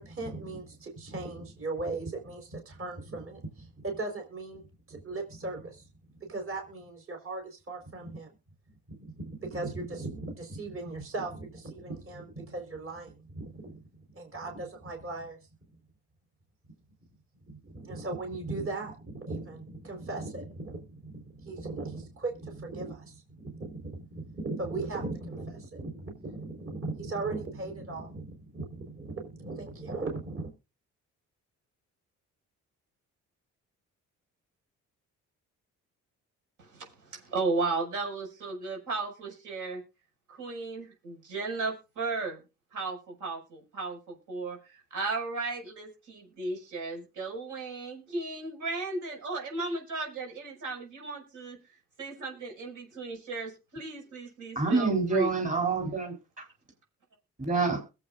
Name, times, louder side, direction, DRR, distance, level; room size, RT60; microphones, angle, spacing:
voice 1, 0.0-4.6 4.9-5.9 6.2-8.3 8.9-13.8 14.1-15.4 17.5-30.5, right 3 dB, 45° right, 4.5 m, -38 dB
voice 2, 36.6-39.8 40.3-42.4 42.7-55.3, right 3 dB, 80° right, 6.0 m, -35 dB
voice 3, 54.6-56.2 57.4-57.8, right 4 dB, 25° right, 3.8 m, -27 dB
22.0 x 8.1 x 2.5 m
cardioid pair, 90°, 30 cm